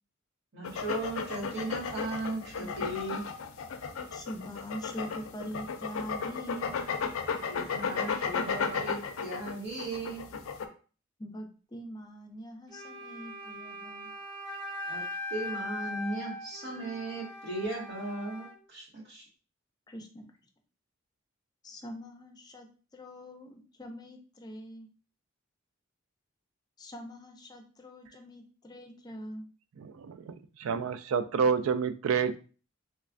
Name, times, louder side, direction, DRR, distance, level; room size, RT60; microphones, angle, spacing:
voice 1, 0.5-3.3 7.5-10.2 14.9-15.0 15.3-19.2, right 2 dB, 60° right, -4 dB, 1.7 m, -37 dB
sound 1, 0.6-10.7, left 6 dB, 85° left, 0.5 m, -34 dB
voice 2, 4.1-6.9 11.2-14.1 19.9-20.2 21.6-24.9 26.8-29.4, equal, 20° left, 4 dB, 0.5 m, -43 dB
Wind instrument woodwind instrument, 12.7-18.6, left 2 dB, 30° right, 1.5 m, -40 dB
voice 3, 29.8-32.4, right 6 dB, 90° right, 11 dB, 0.3 m, -29 dB
3.2 x 3.2 x 2.5 m, 0.37 s
head